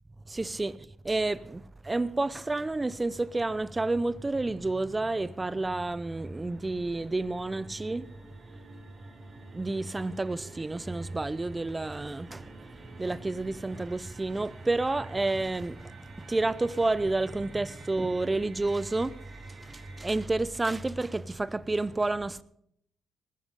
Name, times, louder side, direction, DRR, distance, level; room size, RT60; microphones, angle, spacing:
voice 1, 0.3-8.1 9.5-22.4, right 2 dB, 20° right, 0.7 m, -30 dB
sound 1, 5.3-20.2, right 3 dB, 45° right, 4.1 m, -52 dB
19.5 x 9.7 x 5.4 m
cardioid pair, 90°, 0 cm